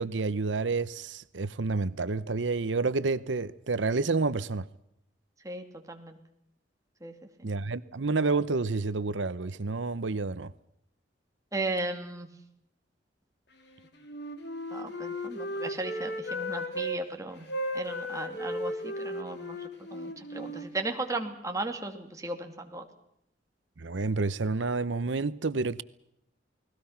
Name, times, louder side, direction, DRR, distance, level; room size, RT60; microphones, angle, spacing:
voice 1, 0.0-4.7 7.4-10.5 23.8-25.8, right 3 dB, 85° right, 0.8 m, -29 dB
voice 2, 5.4-6.2 7.0-7.1 7.4-7.5 11.5-12.3 14.7-17.5 17.7-19.6 19.9-22.8, right 2 dB, 20° right, 2.6 m, -36 dB
Wind instrument woodwind instrument, 14.0-17.0 17.5-21.3, equal, 65° left, 3.1 m, -35 dB
29.0 x 20.0 x 5.8 m
head